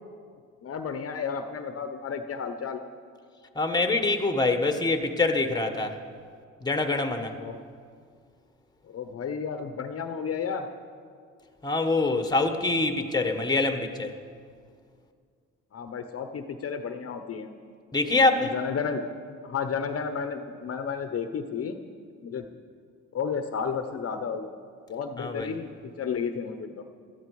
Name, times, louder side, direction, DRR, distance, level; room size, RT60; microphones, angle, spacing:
voice 1, 0.6-2.8 7.4-7.6 8.9-10.7 15.7-17.5 18.4-19.0 19.4-21.8 22.2-22.4 23.1-24.5 24.9-26.8, left 6 dB, 50° left, 7 dB, 0.9 m, -32 dB
voice 2, 3.5-6.0 6.6-7.3 11.6-14.1 17.9-18.5 25.2-25.5, left 3 dB, 15° left, 7 dB, 1.3 m, -25 dB
17.0 x 13.0 x 4.8 m, 2.1 s
cardioid pair, 90°, 30 cm